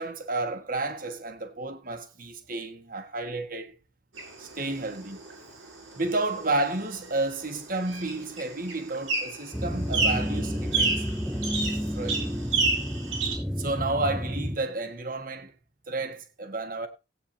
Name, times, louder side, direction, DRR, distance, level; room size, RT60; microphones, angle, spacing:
voice 1, 0.0-3.8 4.4-5.2 5.9-11.0 11.9-12.4 13.6-15.5 15.9-16.9, right 2 dB, 45° right, 1.6 m, -31 dB
sound 1, 4.2-13.3, right 3 dB, 85° right, 6.3 m, -31 dB
sound 2, 9.5-14.6, equal, ahead, 0.7 m, -31 dB
17.5 x 9.3 x 2.8 m
head